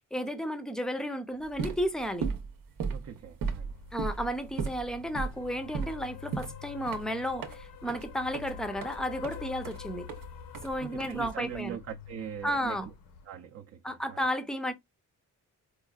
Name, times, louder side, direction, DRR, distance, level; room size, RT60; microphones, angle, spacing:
voice 1, 0.1-2.3 3.9-10.1 10.6-11.8 12.4-12.9 13.8-14.7, equal, ahead, 0.5 m, -33 dB
sound 1, 1.4-11.6, right 5 dB, 80° right, 0.8 m, -37 dB
voice 2, 2.9-3.8 10.8-12.9 13.2-14.3, right 8 dB, 45° right, 0.5 m, -41 dB
sound 2, 3.7-13.3, left 8 dB, 85° left, 0.8 m, -47 dB
4.5 x 2.4 x 2.3 m
wide cardioid pair, 140°, 33 cm